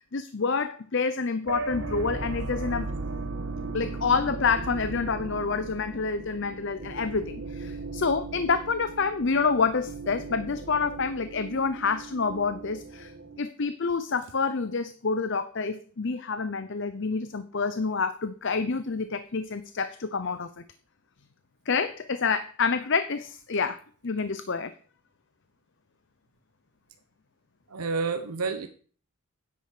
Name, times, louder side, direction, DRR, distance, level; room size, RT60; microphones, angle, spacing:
voice 1, 0.0-2.9 3.7-13.1 13.4-20.6 21.7-23.8 24.0-24.7, left 4 dB, 55° left, 11 dB, 0.7 m, -28 dB
sound 1, 1.5-13.4, right 3 dB, 55° right, 1.4 m, -37 dB
voice 2, 27.7-28.7, right 4 dB, 85° right, 7 dB, 1.1 m, -29 dB
10.5 x 8.4 x 6.6 m, 0.43 s
head